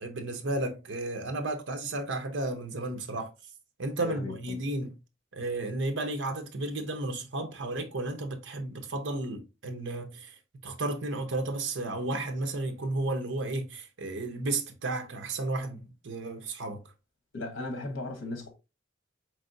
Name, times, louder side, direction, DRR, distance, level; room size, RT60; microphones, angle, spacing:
voice 1, 0.0-3.3 3.8-4.9 5.3-10.3 10.6-16.8, right 2 dB, 65° right, 0.7 m, -33 dB
voice 2, 4.0-4.6 17.3-18.5, left 2 dB, 70° left, 1.0 m, -37 dB
4.4 x 3.2 x 2.6 m
head